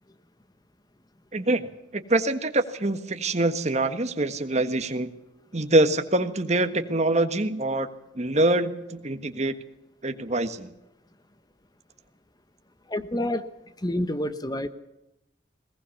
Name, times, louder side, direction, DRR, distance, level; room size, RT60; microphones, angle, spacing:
voice 1, 1.3-5.1 5.5-7.9 8.1-9.5 10.0-10.7, right 2 dB, 40° right, 9 dB, 1.5 m, -25 dB
voice 2, 12.9-13.4 13.8-14.7, left 1 dB, 20° left, 11 dB, 1.0 m, -28 dB
21.0 x 19.0 x 7.1 m, 0.90 s
head